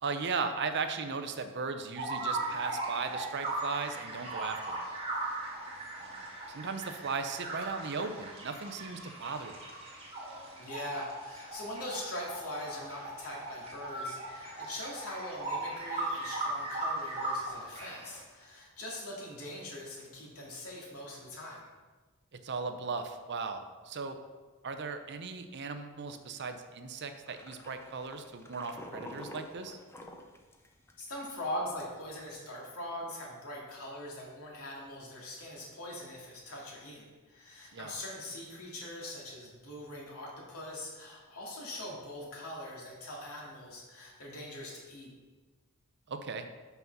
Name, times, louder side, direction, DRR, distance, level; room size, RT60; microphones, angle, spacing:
voice 1, 0.0-4.8 6.0-9.7 22.4-24.2 24.6-29.8 37.7-37.9 46.1-46.5, right 4 dB, 50° right, 7 dB, 0.6 m, -37 dB
sound 1, 2.0-18.2, right 2 dB, 25° right, 1.7 m, -38 dB
voice 2, 10.6-21.6 31.0-45.1, left 1 dB, 80° left, -3 dB, 2.2 m, -42 dB
sound 2, 27.3-31.1 31.4-31.5 31.8-32.2, left 1 dB, 10° left, 0.6 m, -48 dB
5.9 x 5.5 x 5.9 m, 1.3 s
head